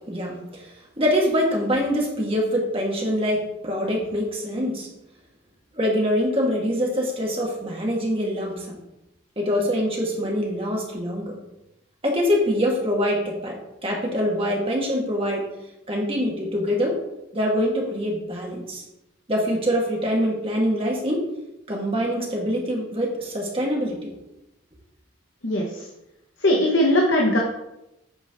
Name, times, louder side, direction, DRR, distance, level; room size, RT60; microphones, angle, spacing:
voice 1, 0.1-0.7 1.0-4.9 5.7-8.8 9.4-11.4 12.0-13.6 13.8-15.4 15.9-17.0 17.3-18.8 19.3-21.2 21.7-24.1, equal, 25° right, -1 dB, 1.4 m, -24 dB
voice 2, 25.4-25.9 26.4-27.4, left 1 dB, 65° left, 0 dB, 1.0 m, -20 dB
8.2 x 4.5 x 3.4 m, 0.89 s
head